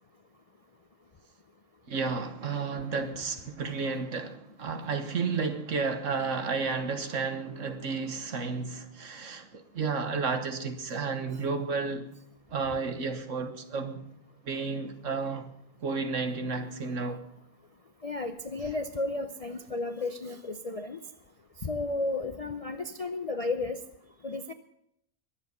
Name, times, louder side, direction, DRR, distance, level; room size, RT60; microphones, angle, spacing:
voice 1, 1.9-12.1 12.5-14.1 14.4-15.5 15.8-17.2, right 4 dB, 60° right, 1.6 m, -32 dB
voice 2, 18.0-21.0 21.6-23.8 24.2-24.5, left 2 dB, 40° left, 0.5 m, -33 dB
22.0 x 7.9 x 6.7 m
omnidirectional pair, 1.5 m